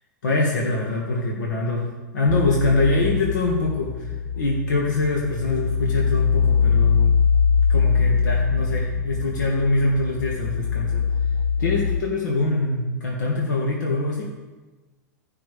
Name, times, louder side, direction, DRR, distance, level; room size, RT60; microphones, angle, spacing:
voice 1, 0.2-7.2 7.7-11.1 11.6-14.3, left 2 dB, 85° left, -2 dB, 1.8 m, -24 dB
sound 1, 2.3-12.0, left 6 dB, 40° left, 0.5 m, -22 dB
17.5 x 5.9 x 3.4 m, 1.2 s
hypercardioid pair, 135°, 10 cm